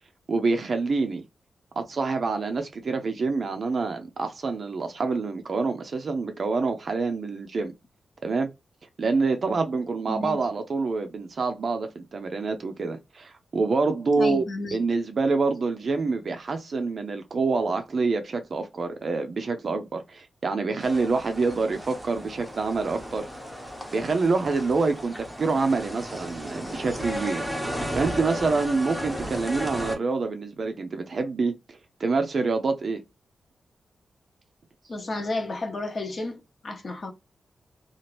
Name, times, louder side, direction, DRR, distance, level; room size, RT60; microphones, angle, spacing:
voice 1, 0.3-1.2 1.8-7.7 8.2-8.5 9.0-14.4 14.7-23.3 23.9-31.5 32.0-33.0, right 4 dB, 45° right, 0.4 m, -26 dB
voice 2, 10.1-10.4 14.2-14.8 34.9-37.1, left 2 dB, 40° left, 0.8 m, -32 dB
sound 1, 20.8-30.0, equal, ahead, 0.7 m, -34 dB
2.9 x 2.4 x 3.0 m
wide cardioid pair, 155°, 0 cm